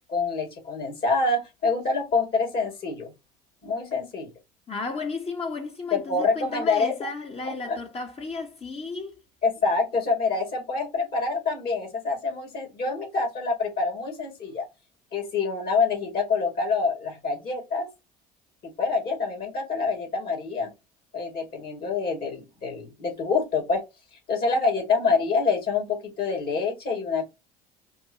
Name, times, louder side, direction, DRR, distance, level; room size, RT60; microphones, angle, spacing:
voice 1, 0.1-3.1 3.6-4.3 5.9-7.1 7.4-7.8 9.4-14.7 15.1-17.9 18.6-20.7 21.1-23.8 24.3-27.2, left 4 dB, 50° left, 2.7 m, -26 dB
voice 2, 4.7-9.1, left 3 dB, 30° left, 1.2 m, -33 dB
5.3 x 2.3 x 2.9 m
hypercardioid pair, 70°, 20 cm